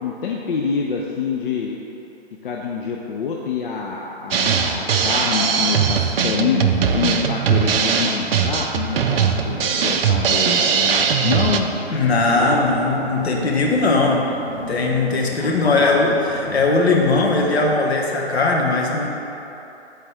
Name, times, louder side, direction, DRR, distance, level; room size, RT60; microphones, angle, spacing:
voice 1, 0.0-1.8 2.4-11.7 12.4-12.7 13.9-14.8 15.3-15.9 16.5-16.6, left 6 dB, 50° left, -1 dB, 0.5 m, -26 dB
Drum kit, 4.3-11.6, right 7 dB, 55° right, 0.5 m, -20 dB
sound 1, 4.8-17.7, right 2 dB, 5° right, 0.8 m, -36 dB
voice 2, 11.9-14.3 14.7-16.2 16.5-19.1, left 3 dB, 65° left, -1 dB, 1.2 m, -19 dB
8.5 x 4.1 x 3.4 m, 3.0 s
hypercardioid pair, 140°, 34 cm